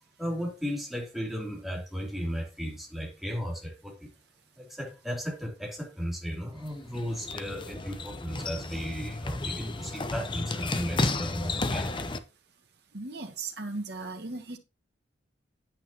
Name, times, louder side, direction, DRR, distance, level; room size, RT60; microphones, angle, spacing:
voice 1, 0.2-4.1 4.6-12.0, equal, ahead, 3.0 m, -35 dB
sound 1, 6.6-12.2, left 2 dB, 25° left, 0.8 m, -33 dB
voice 2, 12.9-14.6, right 3 dB, 60° right, 1.8 m, -37 dB
9.0 x 8.6 x 2.9 m
head